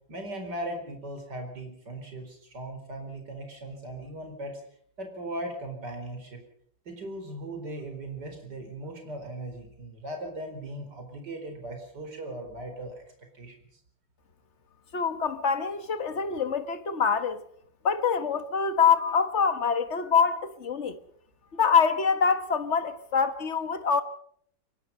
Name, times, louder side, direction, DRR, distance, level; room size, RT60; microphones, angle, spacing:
voice 1, 0.1-4.6 5.0-6.4 6.8-13.0 13.3-13.5, right 1 dB, 60° right, 5.1 m, -38 dB
voice 2, 14.9-17.4 17.8-21.0 21.5-24.0, left 6 dB, 40° left, 1.6 m, -25 dB
24.0 x 21.0 x 5.5 m
omnidirectional pair, 2.1 m